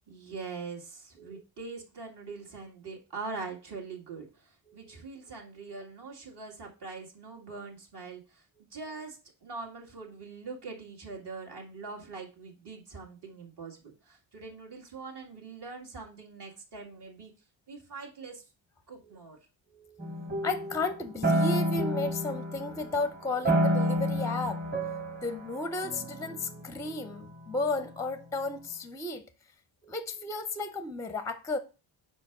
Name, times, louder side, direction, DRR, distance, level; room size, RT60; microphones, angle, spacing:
voice 1, 0.1-17.3 17.7-18.4 18.9-19.4, right 4 dB, 55° right, 2.0 m, -43 dB
voice 2, 4.7-5.0 19.7-20.0 20.4-24.6 25.2-29.3 29.8-31.6, left 3 dB, 5° left, 0.5 m, -34 dB
sound 1, 20.0-23.0 23.4-27.3, equal, 20° right, 1.2 m, -29 dB
4.9 x 4.4 x 5.9 m
cardioid pair, 100°, 49 cm